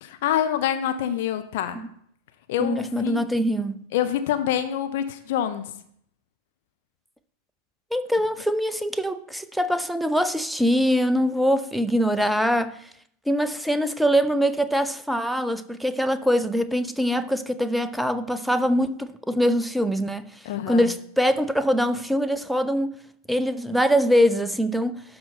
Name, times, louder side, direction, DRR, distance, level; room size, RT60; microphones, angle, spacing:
voice 1, 0.0-1.8 2.5-3.2 3.9-5.6 20.4-20.9, left 10 dB, 50° left, 0.7 m, -26 dB
voice 2, 2.6-3.8 7.9-12.8 13.3-20.2 20.7-22.9 23.3-25.0, equal, ahead, 0.5 m, -23 dB
12.0 x 4.2 x 4.2 m
figure-of-eight pair, 90°, 0 cm